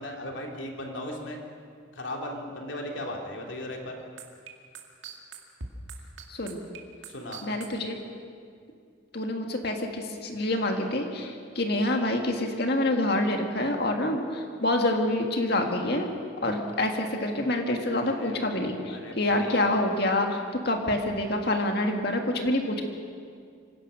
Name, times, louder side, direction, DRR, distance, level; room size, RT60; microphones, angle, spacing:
voice 1, 0.0-1.4 1.9-4.0 7.1-7.4 18.0-18.4 18.8-19.6, left 1 dB, 75° left, 1 dB, 2.8 m, -37 dB
sound 1, 4.2-7.7, right 5 dB, 75° right, 2.2 m, -40 dB
voice 2, 6.3-6.6 7.4-8.0 9.1-16.1 16.4-22.8, left 1 dB, 55° left, 3 dB, 2.1 m, -27 dB
25.5 x 17.0 x 6.3 m, 2.2 s
head